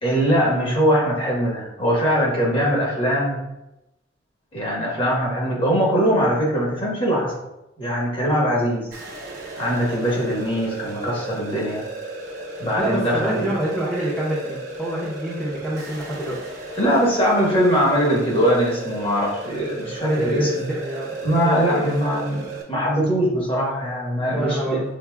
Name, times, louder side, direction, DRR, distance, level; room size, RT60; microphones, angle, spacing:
voice 1, 0.0-3.4 4.5-7.3 7.8-8.9 9.6-11.9 12.6-13.5 16.8-20.7 21.2-24.8, equal, 30° left, -4 dB, 1.3 m, -21 dB
sound 1, 8.9-22.6, right 3 dB, 50° right, 1.0 m, -35 dB
voice 2, 12.8-16.4 20.1-21.2 21.4-22.2 24.3-24.8, equal, 5° left, -7 dB, 0.8 m, -26 dB
6.8 x 2.7 x 2.3 m, 0.90 s
head